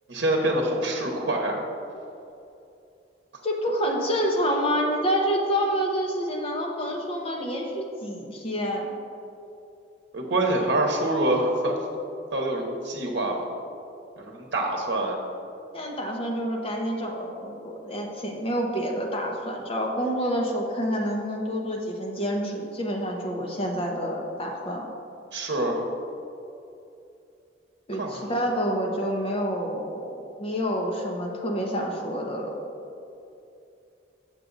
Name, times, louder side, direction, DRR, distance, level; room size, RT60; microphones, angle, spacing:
voice 1, 0.1-1.6 10.1-12.0 12.3-13.4 14.2-15.2 25.3-25.8 27.9-28.3, right 1 dB, 70° right, 0 dB, 0.9 m, -26 dB
voice 2, 3.4-8.9 15.7-24.9 27.9-30.1 30.4-32.5, equal, 30° left, 0 dB, 1.0 m, -28 dB
7.6 x 6.4 x 3.9 m, 2.7 s
head